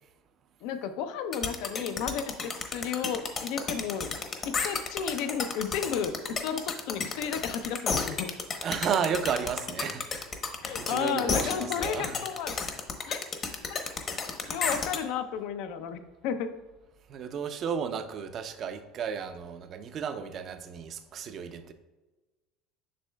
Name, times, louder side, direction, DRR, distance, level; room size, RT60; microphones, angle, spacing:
voice 1, 0.6-4.1 4.4-8.3 10.6-12.6 13.1-13.2 13.7-13.8 14.5-16.5, left 7 dB, 70° left, 0.6 m, -33 dB
sound 1, 1.3-15.0, left 5 dB, 40° left, 0.9 m, -32 dB
voice 2, 8.6-10.3 10.8-12.3 17.1-21.7, right 7 dB, 45° right, 0.6 m, -33 dB
7.6 x 6.1 x 2.3 m
supercardioid pair, 90°, 0 cm